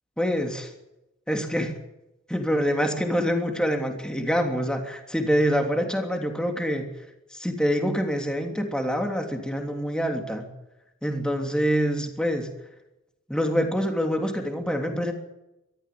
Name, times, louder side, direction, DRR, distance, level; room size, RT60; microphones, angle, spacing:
voice 1, 0.2-0.7 1.3-1.8 2.3-6.9 7.3-10.5 11.0-12.5 13.3-15.1, equal, 5° left, 4 dB, 3.1 m, -26 dB
23.0 x 14.0 x 8.6 m, 0.93 s
head